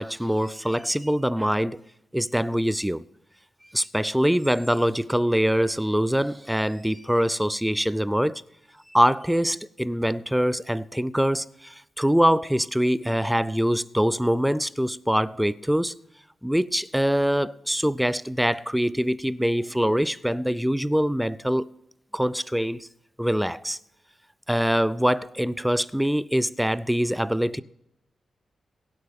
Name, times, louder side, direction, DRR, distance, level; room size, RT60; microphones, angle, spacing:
voice 1, 0.0-1.8 2.1-3.0 3.7-8.4 8.9-16.0 16.4-21.7 22.1-22.9 23.2-23.8 24.5-27.6, equal, 5° right, 0.4 m, -24 dB
22.5 x 7.9 x 3.6 m
wide cardioid pair, 120°, 0 cm